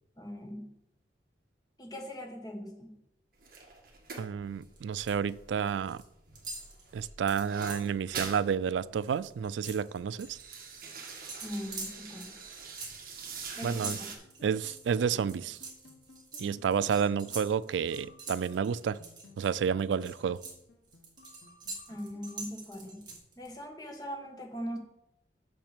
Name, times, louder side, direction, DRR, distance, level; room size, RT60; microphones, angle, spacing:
voice 1, 0.2-0.7 1.8-3.0 11.4-12.3 13.6-14.1 21.9-23.1 23.4-24.8, equal, 20° left, 2 dB, 1.3 m, -40 dB
sound 1, 3.4-6.0 6.3-8.5 8.8-8.9 9.2-9.6 10.0-14.2, right 5 dB, 50° right, 1.6 m, -44 dB
voice 2, 4.2-6.0 6.9-10.4 13.6-14.0 14.4-15.6 16.4-19.0 19.4-20.4, right 7 dB, 80° right, 18 dB, 0.3 m, -30 dB
sound 2, 4.6-5.3 5.6-6.1 6.4-7.9 8.4-8.5 8.8-10.4 11.3-19.5 19.9-23.5, right 3 dB, 25° right, 1.8 m, -44 dB
sound 3, 14.2-23.2, left 3 dB, 85° left, 1.2 m, -58 dB
6.1 x 6.0 x 6.6 m, 0.82 s
head